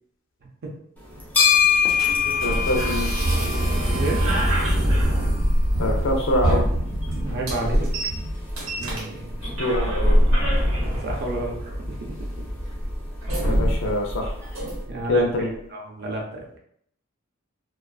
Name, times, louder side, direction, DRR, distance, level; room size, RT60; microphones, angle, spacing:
sound 1, 1.0-14.8, left 7 dB, 10° left, 0.5 m, -29 dB
sound 2, 1.1-15.1, equal, 75° right, 0.9 m, -24 dB
voice 1, 2.4-3.1 5.8-6.7 9.6-10.2 13.4-14.3 15.1-15.5, left 1 dB, 65° left, 1 dB, 0.5 m, -24 dB
voice 2, 7.1-7.9 8.8-9.5 11.0-11.6 11.9-12.0 14.9-15.3 15.7-16.6, right 2 dB, 50° right, 0 dB, 0.6 m, -30 dB
2.4 x 2.4 x 2.3 m, 0.69 s
head